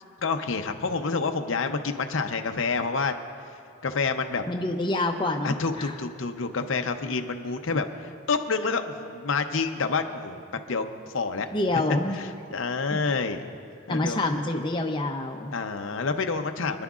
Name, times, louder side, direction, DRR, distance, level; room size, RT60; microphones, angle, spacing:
voice 1, 0.2-3.1 3.8-4.4 5.4-10.4 10.7-10.9 11.1-11.5 11.7-13.4 13.9-14.3 15.5-16.8, left 4 dB, 75° left, 6 dB, 0.7 m, -28 dB
voice 2, 4.5-6.0 11.5-12.2 12.9-13.0 13.9-15.5, left 2 dB, 25° left, 2 dB, 0.6 m, -27 dB
26.0 x 10.5 x 2.4 m, 2.6 s
head